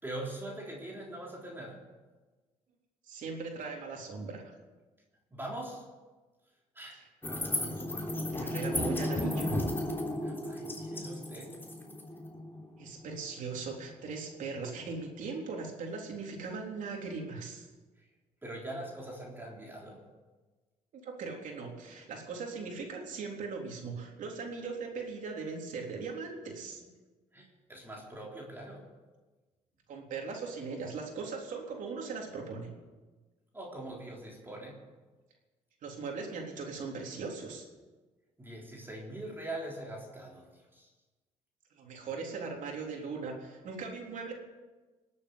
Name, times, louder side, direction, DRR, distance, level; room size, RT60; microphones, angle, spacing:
voice 1, 0.0-1.8 5.3-5.8 6.8-7.0 10.2-11.5 18.4-20.0 27.3-28.9 33.5-34.8 38.4-40.5 40.7-40.9, right 1 dB, 15° right, -2 dB, 3.7 m, -42 dB
voice 2, 3.1-4.4 8.3-9.6 12.8-17.6 20.9-26.9 29.9-32.7 35.8-37.7 41.8-44.3, right 4 dB, 70° right, 1 dB, 3.7 m, -39 dB
sound 1, 7.2-13.7, left 1 dB, 15° left, 3.5 m, -34 dB
20.0 x 8.4 x 8.2 m, 1.3 s
cardioid pair, 90°, 14 cm